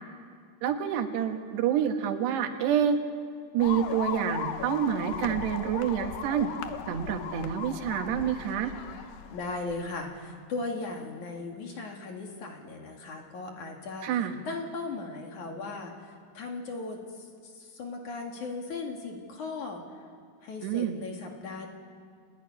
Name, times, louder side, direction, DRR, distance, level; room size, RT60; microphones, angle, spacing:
voice 1, 0.6-3.0 3.5-6.5 6.9-8.7 14.0-14.4 20.6-21.0, right 8 dB, 85° right, 5 dB, 3.7 m, -27 dB
sound 1, 3.6-10.0, left 8 dB, 70° left, 2.6 m, -38 dB
voice 2, 9.3-17.0 17.4-19.8 20.4-21.7, left 3 dB, 50° left, 2 dB, 3.3 m, -37 dB
29.0 x 16.0 x 9.9 m, 2.2 s
omnidirectional pair, 4.7 m